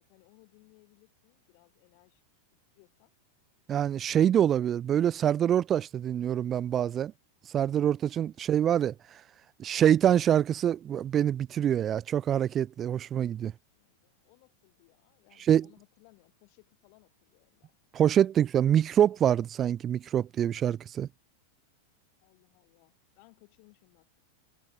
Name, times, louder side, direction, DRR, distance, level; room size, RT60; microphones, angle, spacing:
voice 1, 0.0-2.2 2.7-3.1 8.4-8.7 13.1-13.4 13.7-17.8 22.2-24.2, left 40 dB or more, 45° left, 6.4 m, -63 dB
voice 2, 3.7-7.1 7.5-8.9 9.6-13.5 15.5-15.7 17.9-21.1, right 10 dB, 25° right, 0.3 m, -25 dB
figure-of-eight pair, 90°, 0 cm